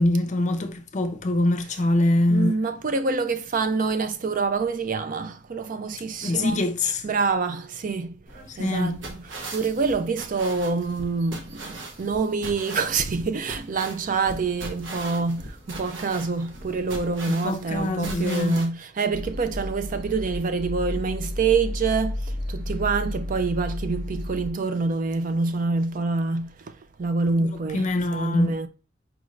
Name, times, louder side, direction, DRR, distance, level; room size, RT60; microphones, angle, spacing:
voice 1, 0.0-2.5 6.2-7.1 8.5-9.0 17.3-18.6 27.4-27.5 27.7-28.7, left 1 dB, 40° left, 0.6 m, -24 dB
voice 2, 2.3-6.6 7.0-8.2 8.6-9.2 9.5-28.7, right 4 dB, 45° right, 0.4 m, -26 dB
sound 1, 8.3-18.7, right 2 dB, 80° right, 1.0 m, -39 dB
sound 2, 19.1-24.5, left 1 dB, 30° right, 0.8 m, -32 dB
4.7 x 2.6 x 3.1 m
head